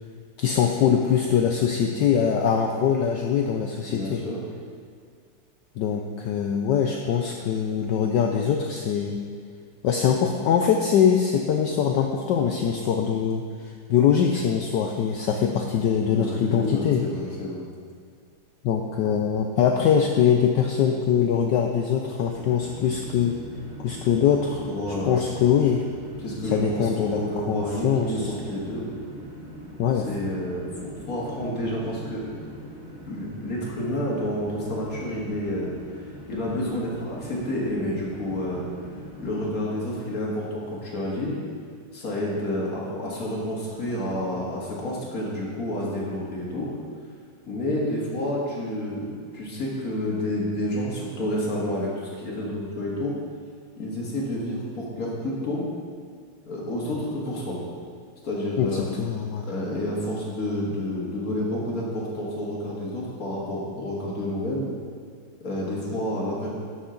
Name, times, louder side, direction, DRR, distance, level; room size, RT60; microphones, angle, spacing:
voice 1, 0.4-4.2 5.8-9.2 9.8-13.4 13.9-17.0 18.6-23.4 23.8-24.6 25.0-25.8 26.5-28.3 29.8-30.1 58.6-59.5, left 8 dB, 75° left, 3 dB, 1.0 m, -22 dB
voice 2, 3.9-4.4 16.1-17.6 24.6-25.3 26.2-28.9 29.9-32.3 33.1-35.7 36.3-38.6 39.2-41.4 41.9-46.7 47.5-53.1 53.8-55.6 56.5-57.6 58.2-58.9 59.4-64.7 65.4-66.5, left 1 dB, 45° left, -4 dB, 2.1 m, -29 dB
sound 1, 22.2-39.4, equal, 5° right, 2.4 m, -41 dB
12.5 x 6.4 x 3.8 m, 2.1 s
omnidirectional pair, 2.4 m